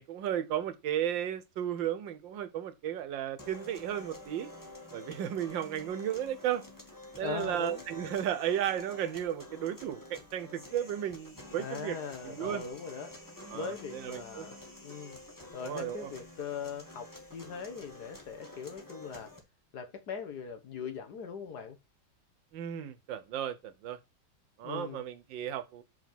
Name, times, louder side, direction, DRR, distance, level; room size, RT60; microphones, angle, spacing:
voice 1, 0.0-4.5 4.9-6.6 7.2-12.0 12.2-12.6 13.5-14.5 15.6-16.1 22.5-24.0 24.6-25.8, right 10 dB, 90° right, 1.6 m, -34 dB
sound 1, 3.4-19.4, left 1 dB, 10° left, 1.4 m, -49 dB
voice 2, 7.2-7.8 11.6-13.1 13.5-14.6 14.8-15.2 15.5-19.3 19.7-21.8 24.6-25.0, left 5 dB, 65° left, 1.6 m, -40 dB
5.8 x 5.3 x 5.8 m
omnidirectional pair, 2.0 m